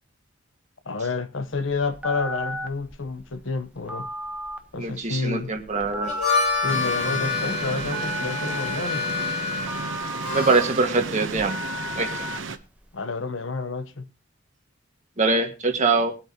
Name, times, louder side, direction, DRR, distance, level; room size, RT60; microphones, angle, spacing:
voice 1, 0.9-4.1 4.7-5.5 6.6-9.2 12.9-14.0, left 3 dB, 75° left, 1.0 m, -29 dB
Telephone, 1.5-12.9, left 1 dB, 5° right, 1.1 m, -35 dB
voice 2, 4.8-6.1 10.3-11.6 12.0-12.3 15.2-16.1, right 3 dB, 35° right, 1.8 m, -23 dB
Harmonica, 5.9-10.9, left 4 dB, 40° left, 4.9 m, -28 dB
sound 1, 6.7-12.6, right 4 dB, 70° right, 1.0 m, -33 dB
22.0 x 8.1 x 2.9 m
head